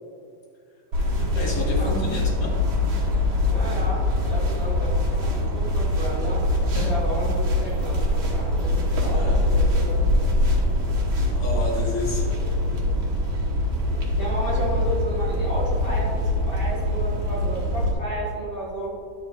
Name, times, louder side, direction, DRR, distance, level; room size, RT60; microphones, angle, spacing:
sound 1, 0.9-17.9, left 1 dB, 85° right, 2.2 m, -23 dB
voice 1, 1.0-2.6 6.7-6.9 9.1-9.3 11.2-12.4, equal, 65° left, -4 dB, 2.2 m, -31 dB
voice 2, 3.5-6.5 6.8-10.1 10.9-11.0 14.2-18.9, equal, 30° left, -7 dB, 1.9 m, -32 dB
10.5 x 7.4 x 2.4 m, 2.3 s
omnidirectional pair, 2.2 m